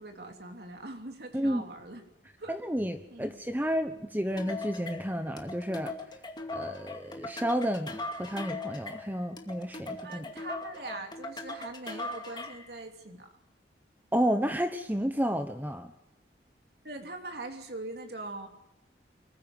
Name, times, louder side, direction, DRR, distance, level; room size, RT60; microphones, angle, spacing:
voice 1, 0.0-2.0 2.4-2.6 3.1-3.4 10.0-13.3 16.8-18.5, right 2 dB, 60° right, 3 dB, 3.1 m, -42 dB
voice 2, 2.5-5.9 6.5-10.2 14.1-15.9, equal, 10° right, 8 dB, 1.1 m, -31 dB
sound 1, 4.4-12.7, left 2 dB, 25° left, 2.2 m, -40 dB
24.5 x 15.0 x 9.2 m, 0.89 s
head